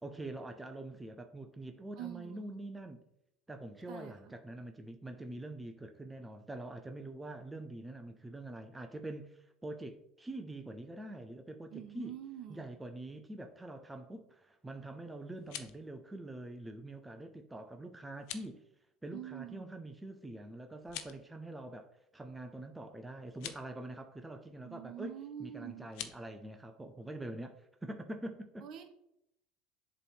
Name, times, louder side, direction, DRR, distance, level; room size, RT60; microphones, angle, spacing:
voice 1, 0.0-3.0 3.5-12.2 12.5-18.6 19.0-28.7, right 1 dB, 10° right, 6 dB, 0.5 m, -45 dB
voice 2, 2.0-2.6 3.9-4.3 11.7-12.7 19.1-19.8 24.6-25.9 28.6-28.8, right 11 dB, 55° right, 6 dB, 1.0 m, -46 dB
sound 1, 15.3-15.8 18.1-18.5 20.8-21.3 23.3-23.6 25.9-26.2, left 11 dB, 70° left, 0.5 m, -45 dB
7.5 x 3.2 x 4.6 m, 0.79 s
hypercardioid pair, 85°, 0 cm